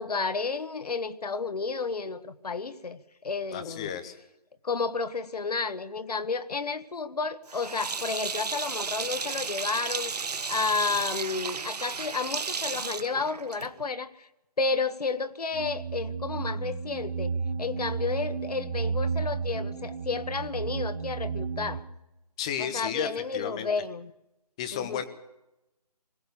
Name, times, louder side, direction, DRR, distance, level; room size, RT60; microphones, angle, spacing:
voice 1, 0.0-3.9 4.6-14.3 14.6-17.3 17.6-21.8 22.6-24.1 24.7-25.0, left 4 dB, 70° left, 12 dB, 1.5 m, -31 dB
voice 2, 3.5-4.1 22.4-23.1 23.3-23.7 24.6-25.1, left 9 dB, 10° left, 10 dB, 0.6 m, -33 dB
Sink (filling or washing), 7.5-13.9, right 5 dB, 75° right, 1.1 m, -34 dB
sound 1, 15.5-21.8, right 5 dB, 15° right, 1.3 m, -32 dB
21.0 x 18.0 x 6.8 m, 0.95 s
figure-of-eight pair, 165°, 20 cm